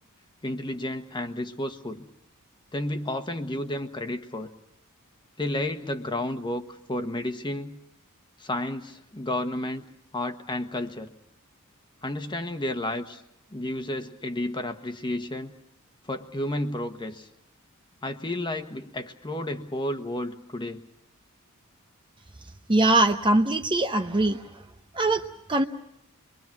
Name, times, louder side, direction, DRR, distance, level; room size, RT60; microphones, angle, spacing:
voice 1, 0.4-2.1 2.7-4.5 5.4-7.8 8.4-9.8 10.1-11.1 12.0-13.2 13.5-15.5 16.1-17.3 18.0-20.8, left 1 dB, 20° left, 7 dB, 1.3 m, -31 dB
voice 2, 22.7-24.6 24.9-25.2 25.5-25.6, right 2 dB, 20° right, 6 dB, 0.8 m, -22 dB
26.0 x 23.0 x 6.0 m, 0.78 s
head